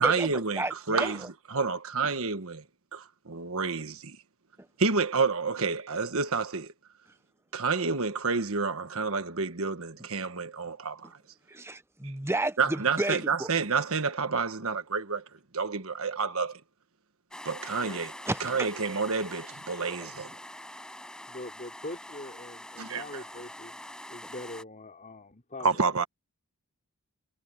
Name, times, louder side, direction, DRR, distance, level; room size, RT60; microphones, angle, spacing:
voice 1, 0.0-2.6 2.9-4.2 4.8-6.7 7.5-11.1 12.6-15.2 15.5-16.6 17.4-18.1 18.4-20.3 22.8-23.2 25.6-26.0, right 4 dB, 65° right, 1.4 m, -29 dB
voice 2, 0.6-1.1 11.5-13.5 18.3-18.5 20.0-20.1, right 2 dB, 10° right, 1.2 m, -32 dB
sound 1, 17.3-24.6, left 1 dB, 5° left, 6.2 m, -44 dB
voice 3, 21.3-23.8 24.1-26.0, left 2 dB, 35° left, 5.0 m, -43 dB
head